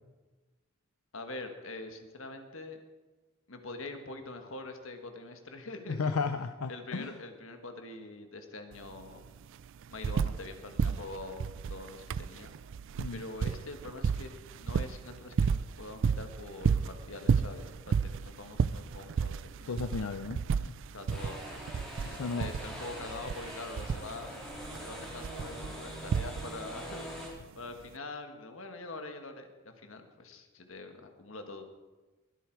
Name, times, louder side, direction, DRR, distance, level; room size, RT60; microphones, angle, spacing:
voice 1, 1.1-2.8 3.5-6.1 6.7-9.3 9.9-12.5 13.1-19.8 20.9-21.6 22.1-24.3 24.8-27.1 27.5-31.6, left 2 dB, 65° left, 6 dB, 1.5 m, -44 dB
voice 2, 5.9-7.2 13.0-13.2 19.7-20.7 22.1-22.5, left 4 dB, 90° left, 9 dB, 0.6 m, -34 dB
sound 1, 8.7-8.8 9.1-10.5 10.8-26.7 27.8-27.9, right 6 dB, 60° right, 0.3 m, -32 dB
sound 2, 21.1-27.3, equal, ahead, 3.6 m, -43 dB
21.5 x 8.3 x 4.6 m, 1.2 s
head